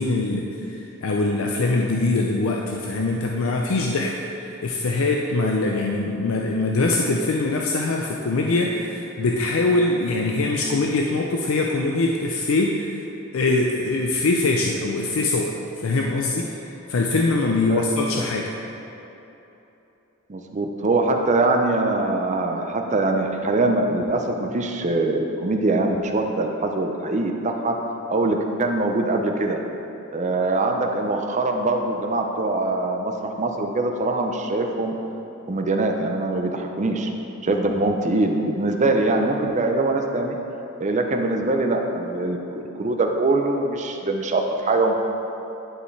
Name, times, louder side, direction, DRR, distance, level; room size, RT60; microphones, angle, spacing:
voice 1, 0.0-13.0 13.3-18.5, left 2 dB, 75° left, 0 dB, 0.5 m, -23 dB
voice 2, 20.3-27.8 28.1-29.6 30.1-35.0 35.5-37.1 37.4-40.4 40.8-44.9, right 2 dB, 35° right, 3 dB, 0.5 m, -23 dB
10.5 x 5.4 x 3.2 m, 3.0 s
head